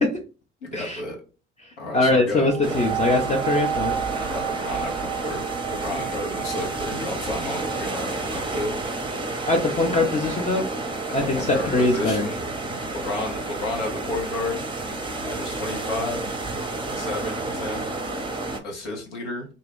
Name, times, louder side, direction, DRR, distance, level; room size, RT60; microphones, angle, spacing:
voice 1, 0.6-1.2 1.8-2.8 4.2-5.4 5.7-8.8 11.3-12.4 12.9-14.6 15.2-16.2 16.9-17.9 18.6-19.5, left 2 dB, 85° left, -1 dB, 0.9 m, -31 dB
voice 2, 1.9-3.9 9.5-10.7 11.1-12.3, left 2 dB, 20° left, 0 dB, 0.6 m, -22 dB
sound 1, 2.5-11.7 12.4-12.5, right 9 dB, 70° right, 0.5 m, -33 dB
sound 2, 2.6-18.6, right 2 dB, 15° right, 0.7 m, -31 dB
2.6 x 2.3 x 3.5 m, 0.35 s
figure-of-eight pair, 55°, 34 cm